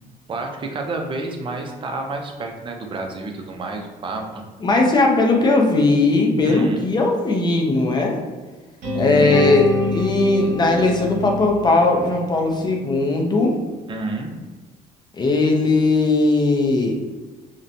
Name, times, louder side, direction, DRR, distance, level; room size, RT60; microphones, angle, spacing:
voice 1, 0.3-4.4 6.4-6.9 9.1-9.3 13.9-14.3, right 3 dB, 30° right, 2 dB, 0.4 m, -30 dB
voice 2, 4.6-8.2 8.9-13.6 15.1-17.0, left 2 dB, 25° left, 1 dB, 0.5 m, -18 dB
sound 1, 8.8-12.9, left 3 dB, 50° right, 1.1 m, -26 dB
2.7 x 2.1 x 2.5 m, 1.3 s
cardioid pair, 110°, 17 cm